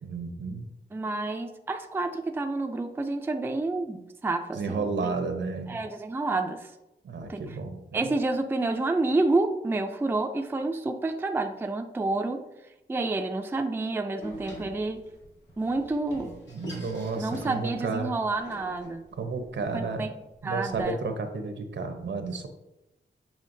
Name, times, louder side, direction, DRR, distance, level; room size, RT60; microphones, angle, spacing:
voice 1, 0.0-0.7 4.5-5.8 7.0-8.0 16.5-18.1 19.1-20.1 20.4-22.5, right 4 dB, 80° right, 6 dB, 0.8 m, -32 dB
voice 2, 0.9-5.1 5.7-6.7 7.3-7.6 7.9-12.5 12.9-15.0 15.6-16.3 17.1-19.1 19.7-20.1 20.4-21.0, right 2 dB, 10° right, 5 dB, 0.3 m, -29 dB
Door, 14.2-20.8, equal, 80° left, 2.2 m, -45 dB
7.3 x 5.5 x 2.6 m, 0.95 s
wide cardioid pair, 155°, 18 cm